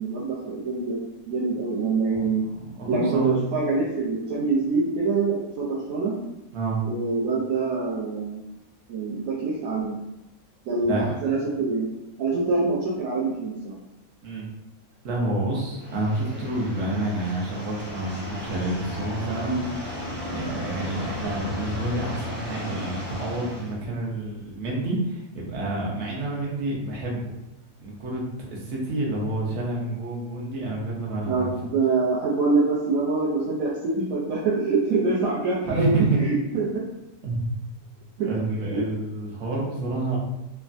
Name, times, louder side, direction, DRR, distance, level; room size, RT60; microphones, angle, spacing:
voice 1, 0.0-2.4 2.9-6.2 6.9-8.4 8.9-10.0 10.7-11.9 12.2-13.7 19.5-19.7 31.3-36.8 38.2-38.3 38.7-38.8, right 3 dB, 80° right, -6 dB, 1.1 m, -25 dB
voice 2, 2.2-3.4 6.5-6.8 10.9-11.4 14.2-14.5 15.0-19.6 20.3-27.3 27.8-31.5 35.6-36.2 37.2-37.4 38.2-40.2, right 2 dB, 60° right, -3 dB, 1.0 m, -29 dB
sound 1, 15.7-23.7, left 1 dB, 10° right, 0.5 m, -35 dB
3.3 x 2.1 x 2.5 m, 0.93 s
omnidirectional pair, 1.5 m